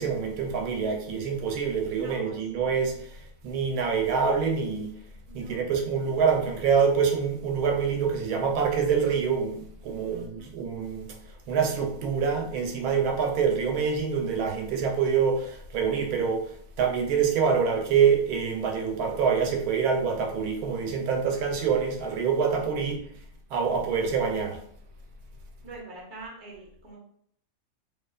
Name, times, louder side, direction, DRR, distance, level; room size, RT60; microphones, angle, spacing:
voice 1, 0.0-4.9 5.3-11.1 11.5-16.4 16.8-23.0 23.5-24.6, right 6 dB, 90° right, 2 dB, 1.1 m, -26 dB
voice 2, 1.9-2.9 5.3-5.6 10.1-10.5 22.6-23.1 25.6-27.0, right 2 dB, 45° right, -4 dB, 0.8 m, -45 dB
2.6 x 2.4 x 2.3 m, 0.66 s
omnidirectional pair, 1.6 m